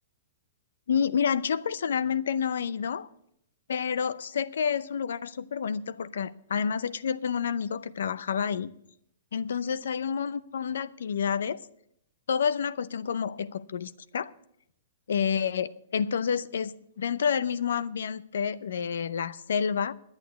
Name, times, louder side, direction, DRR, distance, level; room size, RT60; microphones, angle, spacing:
voice 1, 0.9-3.1 3.7-8.7 9.3-11.6 12.3-14.3 15.1-19.9, left 7 dB, 85° left, 0.6 m, -29 dB
10.5 x 9.0 x 8.2 m
hypercardioid pair, 165°, 0 cm